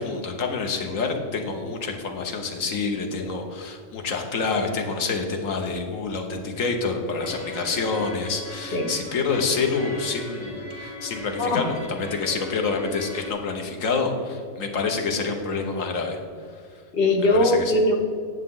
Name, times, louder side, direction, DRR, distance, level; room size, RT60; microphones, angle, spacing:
voice 1, 0.0-16.2 17.3-17.7, left 4 dB, 80° left, 3 dB, 1.4 m, -27 dB
sound 1, 7.2-13.3, left 1 dB, 30° left, 1.3 m, -39 dB
voice 2, 16.9-17.9, left 1 dB, 50° left, 4 dB, 1.0 m, -20 dB
9.8 x 7.3 x 3.8 m, 2.2 s
omnidirectional pair, 1.4 m